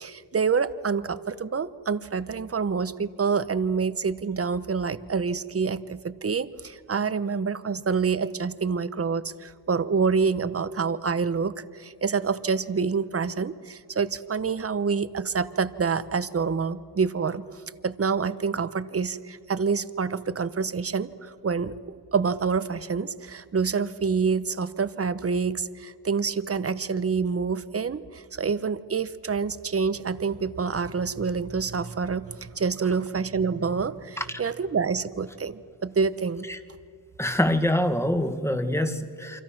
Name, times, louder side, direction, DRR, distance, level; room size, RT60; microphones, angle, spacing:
voice 1, 0.0-17.4 17.8-36.4, right 5 dB, 35° right, 14 dB, 1.1 m, -27 dB
voice 2, 37.2-39.4, left 1 dB, 5° left, 8 dB, 1.9 m, -25 dB
28.5 x 25.0 x 6.0 m, 2.3 s
cardioid pair, 70°, 42 cm